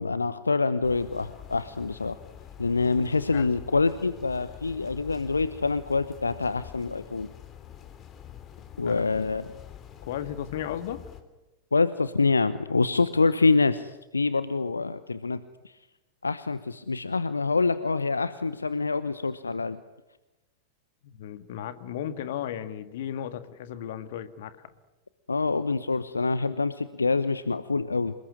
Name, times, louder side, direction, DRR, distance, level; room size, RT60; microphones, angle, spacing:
voice 1, 0.0-2.2 2.6-7.3 8.8-9.5 11.7-15.4 16.2-19.8 25.3-28.1, left 4 dB, 80° left, 14 dB, 0.9 m, -26 dB
sound 1, 0.8-11.2, left 10 dB, 30° left, 3.0 m, -46 dB
voice 2, 8.8-9.1 10.0-11.0 21.0-24.5, left 10 dB, 55° left, 11 dB, 1.9 m, -35 dB
27.5 x 20.0 x 9.8 m, 1.0 s
figure-of-eight pair, 90°, 0 cm